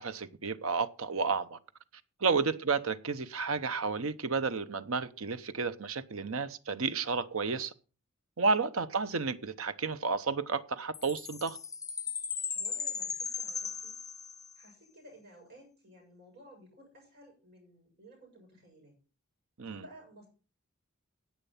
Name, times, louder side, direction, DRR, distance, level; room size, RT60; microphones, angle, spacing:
voice 1, 0.0-1.6 2.2-7.7 8.4-11.6 19.6-19.8, right 4 dB, 70° right, 0.8 m, -31 dB
voice 2, 2.2-2.6 12.5-14.0 14.6-19.0 19.7-20.3, equal, 50° right, 7.4 m, -55 dB
Chime, 10.9-14.7, left 6 dB, 15° left, 0.7 m, -37 dB
10.5 x 8.2 x 5.7 m
head